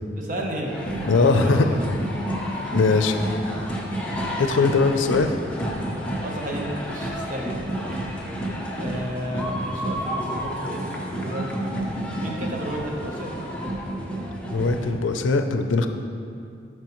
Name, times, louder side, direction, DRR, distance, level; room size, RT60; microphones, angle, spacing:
voice 1, 0.2-1.9 2.5-2.8 6.2-7.7 8.0-8.4 8.8-10.9 11.2-11.7 12.2-13.3, equal, 45° right, -1 dB, 1.0 m, -33 dB
sound 1, 0.7-14.9, equal, 5° left, 0.8 m, -30 dB
voice 2, 1.1-1.7 2.7-3.2 4.4-5.3 14.5-15.9, left 4 dB, 85° left, 7 dB, 0.5 m, -20 dB
12.0 x 4.6 x 3.1 m, 2.5 s
head